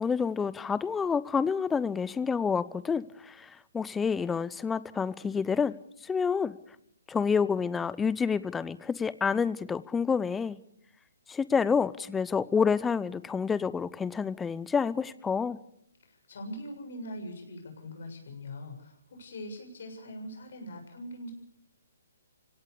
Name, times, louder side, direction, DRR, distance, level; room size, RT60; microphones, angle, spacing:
voice 1, 0.0-5.7 6.0-6.6 7.1-10.6 11.3-15.6, left 6 dB, 10° left, 17 dB, 0.8 m, -28 dB
voice 2, 16.0-21.3, left 1 dB, 60° left, 4 dB, 7.1 m, -42 dB
25.5 x 17.0 x 6.9 m, 0.72 s
hypercardioid pair, 145°, 0 cm